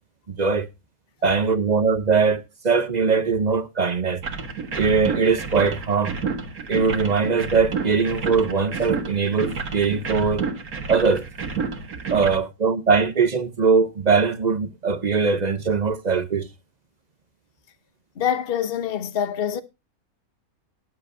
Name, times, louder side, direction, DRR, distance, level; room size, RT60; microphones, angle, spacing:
voice 1, 0.3-0.7 1.2-4.2 4.7-6.2 6.7-10.5 10.9-11.3 12.1-16.5, right 5 dB, 40° right, 0.6 m, -21 dB
sound 1, 4.2-12.4, right 5 dB, 75° right, 2.1 m, -30 dB
voice 2, 18.2-19.6, left 9 dB, 45° left, 1.0 m, -25 dB
20.0 x 7.9 x 2.6 m
omnidirectional pair, 1.6 m